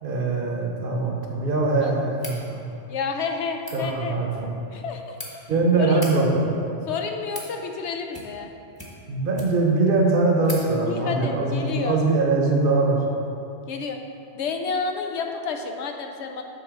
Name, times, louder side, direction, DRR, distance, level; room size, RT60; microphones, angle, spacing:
voice 1, 0.0-2.6 3.7-4.5 5.5-6.5 9.1-13.0, right 3 dB, 55° right, 0 dB, 1.1 m, -22 dB
sound 1, 2.1-2.4 3.5-3.8 4.7-5.3 5.9-6.1 6.9-7.5 8.1-8.5 8.7-9.7 10.0-10.1 10.4-10.6, left 1 dB, 20° left, 1.1 m, -38 dB
voice 2, 2.9-4.2 4.7-5.2 5.8-6.0 6.9-8.5 10.9-12.0 13.7-14.0 14.3-16.4, left 5 dB, 80° left, 4 dB, 1.0 m, -30 dB
6.9 x 4.1 x 5.9 m, 2.7 s
omnidirectional pair, 1.2 m